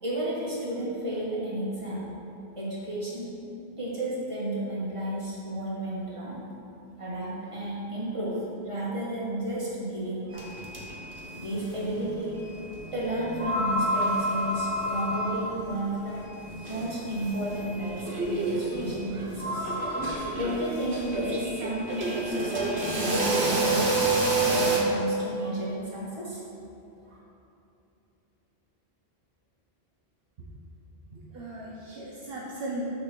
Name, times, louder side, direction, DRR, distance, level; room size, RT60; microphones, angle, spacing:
voice 1, 0.0-2.1 2.5-3.3 3.8-6.4 7.0-10.4 11.4-16.3 16.7-20.0 20.3-24.1 24.5-26.4 27.1-27.2, right 1 dB, 30° right, -7 dB, 1.7 m, -32 dB
sound 1, 10.3-11.7 12.0-15.3 15.6-15.7 16.2-24.8, right 3 dB, 90° right, 1.4 m, -30 dB
sound 2, 11.6-11.7 13.4-15.8 17.6-17.7 19.3-20.2, left 1 dB, 10° left, 0.6 m, -29 dB
voice 2, 31.1-32.8, right 1 dB, 70° right, -4 dB, 1.0 m, -37 dB
6.7 x 3.4 x 6.1 m, 2.8 s
omnidirectional pair, 1.1 m